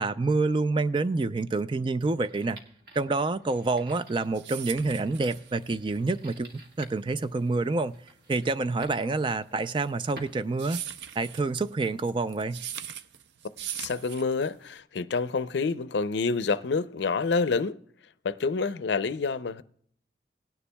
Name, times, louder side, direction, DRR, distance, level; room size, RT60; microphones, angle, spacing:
voice 1, 0.0-2.6 3.0-6.5 6.8-7.9 8.3-10.8 11.2-12.6, right 3 dB, 25° right, 0.3 m, -27 dB
sound 1, 2.2-11.3, right 1 dB, 55° right, 1.5 m, -53 dB
sound 2, 4.0-14.8, right 10 dB, 85° right, 0.5 m, -41 dB
voice 2, 13.7-17.8 18.2-19.6, left 4 dB, 80° left, 0.5 m, -28 dB
18.0 x 9.8 x 2.2 m
head